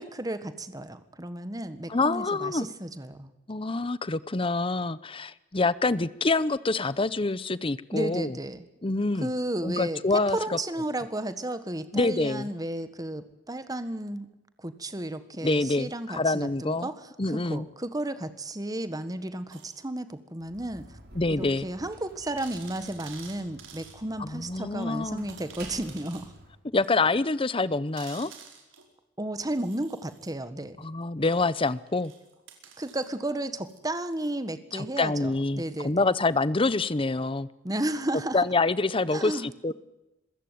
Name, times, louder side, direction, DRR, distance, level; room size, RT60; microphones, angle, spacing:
voice 1, 0.0-3.3 7.9-8.7 9.2-10.0 10.3-14.3 14.6-20.9 21.3-26.3 29.2-30.9 32.8-36.0 37.6-38.4 39.1-39.7, right 1 dB, 20° right, 11 dB, 1.5 m, -33 dB
voice 2, 1.9-2.7 3.5-8.3 8.8-9.3 9.6-10.6 11.9-12.5 15.4-16.9 17.2-17.6 21.2-21.7 24.2-25.3 26.7-28.3 30.8-32.1 34.7-37.5 38.3-39.7, left 3 dB, 30° left, 17 dB, 0.8 m, -26 dB
sound 1, 19.5-19.8 20.8-20.9 21.3-21.4 21.7-21.8 22.4-24.0 24.5-24.6 25.3-26.3 26.8-26.9 28.0-28.9 29.5-30.3 31.3-34.3 36.2-36.3, right 7 dB, 85° right, 5.0 m, -49 dB
Slam, 20.4-26.6, right 2 dB, 55° right, 5.0 m, -49 dB
27.0 x 15.5 x 9.3 m, 0.97 s
head